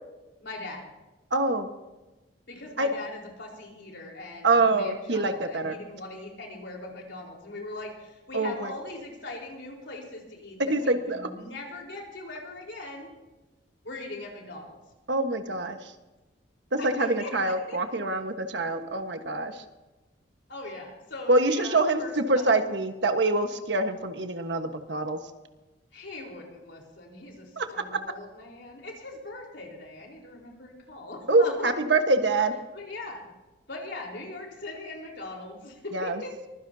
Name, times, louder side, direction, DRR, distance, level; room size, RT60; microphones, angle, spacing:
voice 1, 0.4-0.9 2.5-13.1 13.8-14.8 16.8-17.8 20.5-22.5 25.9-31.7 32.7-33.2 33.7-36.4, left 2 dB, 70° left, 0 dB, 4.3 m, -40 dB
voice 2, 1.3-1.7 2.8-2.9 4.4-5.7 8.3-8.7 10.7-11.2 15.1-15.8 16.7-19.5 21.3-25.2 27.6-27.7 31.3-32.5 35.9-36.2, right 2 dB, 65° right, 6 dB, 1.4 m, -25 dB
24.0 x 16.0 x 2.8 m, 1.1 s
head